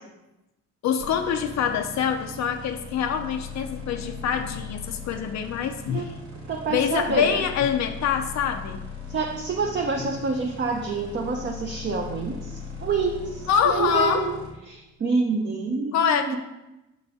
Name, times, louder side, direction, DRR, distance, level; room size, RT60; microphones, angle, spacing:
voice 1, 0.8-6.1 6.7-8.8 13.5-14.2 15.9-16.4, left 7 dB, 65° left, 6 dB, 0.5 m, -25 dB
sound 1, 1.0-14.5, left 4 dB, 70° right, 1.6 m, -39 dB
voice 2, 6.5-7.5 9.1-14.4 14.7-16.4, right 4 dB, 40° right, 1 dB, 0.7 m, -27 dB
6.7 x 4.1 x 3.6 m, 0.98 s
cardioid pair, 90°, 30 cm